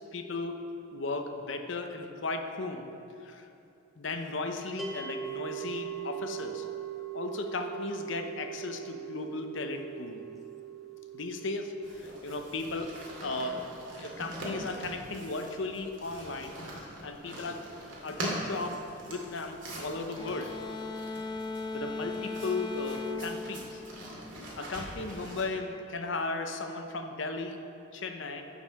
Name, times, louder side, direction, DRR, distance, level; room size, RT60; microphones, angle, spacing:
voice 1, 0.1-0.6 0.9-2.9 3.2-3.5 4.0-6.7 7.1-10.2 11.1-13.7 14.0-16.6 17.0-17.6 18.0-20.5 21.7-23.8 24.3-27.6 27.9-28.4, left 3 dB, 70° left, 6 dB, 0.8 m, -36 dB
sound 1, 4.8-15.9, right 9 dB, ahead, 0.8 m, -42 dB
sound 2, 11.8-25.4, right 1 dB, 75° right, 2.3 m, -43 dB
sound 3, 20.2-24.6, left 3 dB, 20° left, 0.4 m, -38 dB
9.9 x 5.4 x 6.3 m, 2.7 s
head